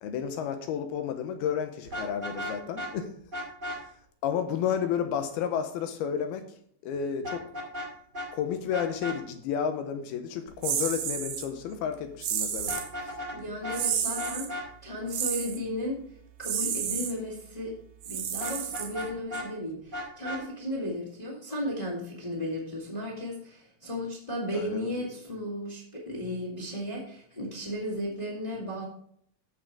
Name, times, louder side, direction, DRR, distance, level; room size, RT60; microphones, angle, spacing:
voice 1, 0.0-3.1 4.2-6.4 6.8-7.4 8.3-12.7 13.0-13.1 24.5-25.1, left 8 dB, 80° left, 7 dB, 2.6 m, -31 dB
Vehicle horn car horn honking, 1.9-2.9 3.3-3.8 7.2-8.3 8.7-9.2 12.6-13.4 13.6-13.8 14.2-14.7 18.4-19.5 19.9-20.4, left 1 dB, 30° right, 2.5 m, -35 dB
sound 1, 10.6-11.5 12.2-12.9 13.7-14.5 15.1-15.6 16.4-17.1 18.0-19.2, right 8 dB, 65° right, 2.2 m, -31 dB
voice 2, 13.3-16.0 16.4-17.7 18.0-28.8, left 1 dB, 15° left, -3 dB, 1.8 m, -35 dB
15.5 x 5.6 x 3.5 m, 0.64 s
omnidirectional pair, 4.7 m